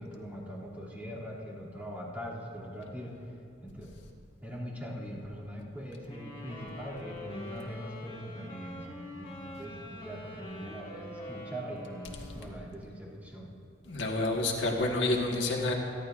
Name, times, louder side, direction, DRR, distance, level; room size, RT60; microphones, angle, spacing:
voice 1, 0.0-3.3 3.6-3.9 4.4-13.5, equal, 10° right, -8 dB, 2.7 m, -41 dB
sound 1, 6.1-12.6, left 1 dB, 30° left, 1.9 m, -45 dB
voice 2, 13.9-15.7, left 2 dB, 80° left, 0 dB, 1.6 m, -28 dB
27.0 x 11.5 x 2.6 m, 2.5 s
head